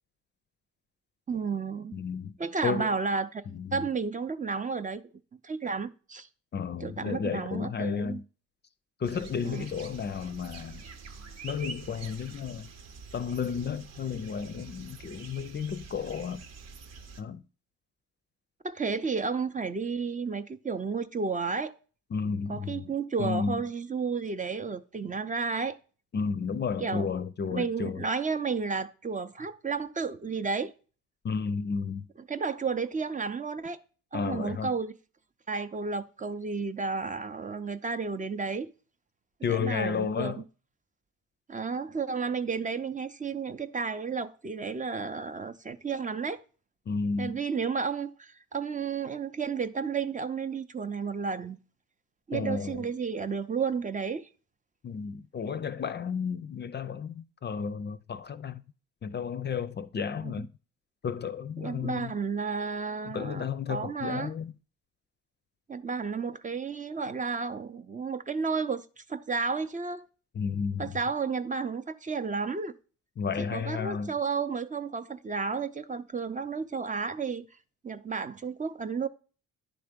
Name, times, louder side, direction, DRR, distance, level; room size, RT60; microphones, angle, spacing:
voice 1, 1.3-2.0 2.4-3.4 3.7-5.0 5.4-6.3 6.8-8.2 9.4-9.6 18.6-21.8 22.5-25.8 26.8-27.1 27.5-30.7 32.3-33.8 34.1-34.9 35.5-38.7 39.5-40.4 41.5-46.4 47.2-51.6 52.3-54.3 60.2-60.5 61.6-64.3 65.7-70.1 70.8-72.7 73.4-77.5 77.8-79.1, right 5 dB, 25° right, 0.6 m, -32 dB
voice 2, 1.9-2.3 2.6-2.9 3.5-3.8 6.5-8.2 9.0-10.8 11.4-12.7 13.1-16.5 17.2-17.4 22.1-22.9 23.2-23.6 26.1-28.1 31.2-32.1 34.1-34.7 39.4-40.4 46.9-47.4 52.3-52.9 54.8-58.6 59.0-60.5 61.0-62.1 63.0-64.5 70.3-70.9 73.2-74.1, left 6 dB, 35° left, 0.5 m, -32 dB
sound 1, 9.0-17.2, right 5 dB, 60° right, 1.0 m, -46 dB
10.5 x 3.4 x 5.1 m
cardioid pair, 90°, 30 cm